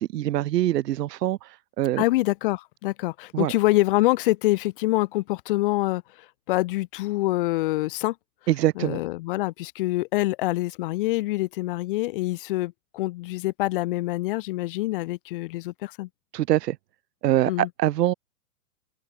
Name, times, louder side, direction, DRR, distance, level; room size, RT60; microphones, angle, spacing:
voice 1, 0.0-2.0 3.3-3.5 8.5-9.0 16.3-16.8 17.2-18.1, right 14 dB, 85° right, 0.6 m, -24 dB
voice 2, 2.0-8.2 8.8-16.1 17.5-17.7, left 19 dB, 35° left, 0.6 m, -25 dB
hypercardioid pair, 125°, 47 cm